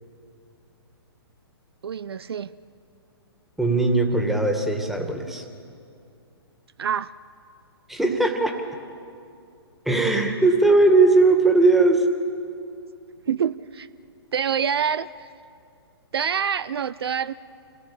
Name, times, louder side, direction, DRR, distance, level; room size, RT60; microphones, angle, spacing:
voice 1, 1.8-2.5 6.8-7.1 13.3-13.9 14.3-15.3 16.1-17.3, right 7 dB, 65° right, 17 dB, 0.6 m, -26 dB
voice 2, 3.6-5.4 7.9-8.6 9.9-12.1, right 3 dB, ahead, 3 dB, 2.2 m, -19 dB
27.0 x 18.5 x 8.7 m, 2.5 s
figure-of-eight pair, 120°, 14 cm